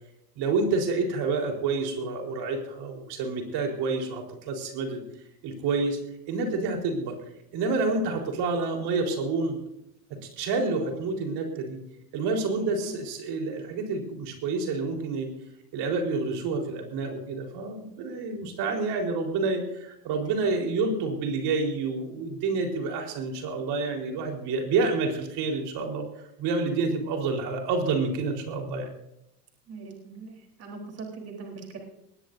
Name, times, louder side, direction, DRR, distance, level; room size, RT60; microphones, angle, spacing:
voice 1, 0.4-5.0 5.4-6.0 6.3-7.2 7.5-9.6 10.1-11.8 12.1-15.3 15.7-26.0 26.4-28.9, right 3 dB, 50° right, 2 dB, 4.2 m, -28 dB
voice 2, 12.3-13.0 29.7-31.8, right 3 dB, 30° right, 0 dB, 3.8 m, -41 dB
20.0 x 18.0 x 2.7 m, 0.81 s
supercardioid pair, 110°, 49 cm